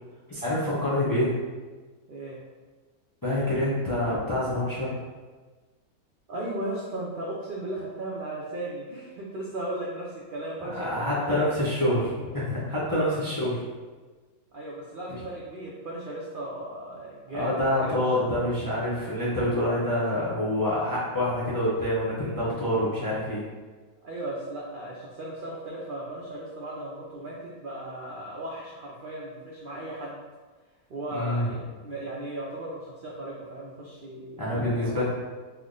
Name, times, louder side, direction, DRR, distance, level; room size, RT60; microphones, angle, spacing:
voice 1, 0.3-1.3 3.2-4.9 10.7-13.6 17.3-23.4 31.1-31.5 34.4-35.0, left 1 dB, 35° left, -8 dB, 0.3 m, -26 dB
voice 2, 6.3-11.5 12.9-13.2 14.5-18.0 24.0-30.2 30.9-35.0, right 1 dB, 85° right, -5 dB, 0.4 m, -36 dB
3.4 x 2.0 x 3.7 m, 1.3 s
omnidirectional pair, 1.5 m